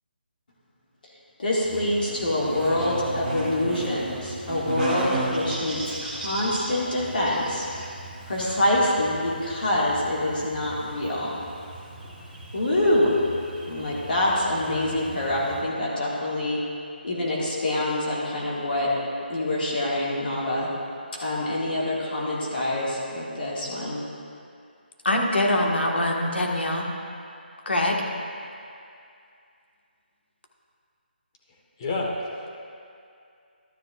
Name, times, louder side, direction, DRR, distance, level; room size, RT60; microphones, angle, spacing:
voice 1, 1.4-7.6 8.3-11.3 12.5-13.1 13.7-16.6 17.0-18.9 19.3-20.7 21.2-24.0, left 1 dB, 60° left, -5 dB, 1.9 m, -25 dB
Buzz, 1.6-15.6, right 2 dB, 10° right, 1.2 m, -36 dB
voice 2, 25.0-26.9 27.6-28.0, left 1 dB, 85° left, 0 dB, 1.5 m, -23 dB
voice 3, 31.8-32.5, left 2 dB, 30° left, -2 dB, 1.3 m, -29 dB
12.5 x 9.6 x 2.4 m, 2.5 s
figure-of-eight pair, 155°, 6 cm